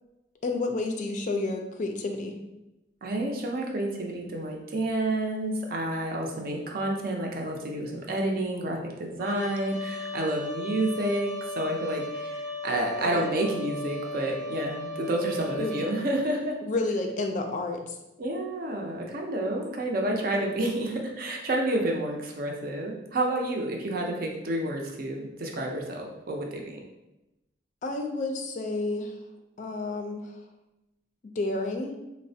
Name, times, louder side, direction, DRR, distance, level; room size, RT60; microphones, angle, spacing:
voice 1, 0.4-2.3 13.0-13.3 15.6-15.7 16.6-17.9 27.8-29.1 29.6-30.2 31.4-31.9, left 2 dB, 45° left, 4 dB, 0.4 m, -30 dB
voice 2, 3.0-16.6 18.2-26.8, right 1 dB, 55° right, 1 dB, 0.5 m, -29 dB
Trumpet, 9.2-16.1, left 2 dB, 10° right, 0.7 m, -36 dB
4.0 x 2.1 x 2.6 m, 0.95 s
head